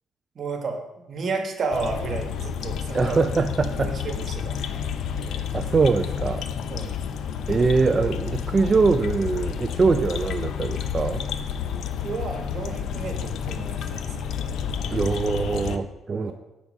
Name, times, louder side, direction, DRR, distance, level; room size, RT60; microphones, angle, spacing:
voice 1, 0.3-3.2 3.8-4.6 6.7-7.0 7.4-7.7 11.6-14.6 15.7-15.8 16.1-16.3, right 4 dB, 55° right, 4 dB, 1.2 m, -32 dB
sound 1, 1.7-15.8, left 7 dB, 70° left, 0.4 m, -30 dB
voice 2, 2.9-4.0 5.2-6.5 7.5-11.3 14.9-16.3, right 4 dB, 35° right, 7 dB, 0.4 m, -23 dB
6.0 x 4.0 x 6.0 m, 0.97 s
supercardioid pair, 75°, 0 cm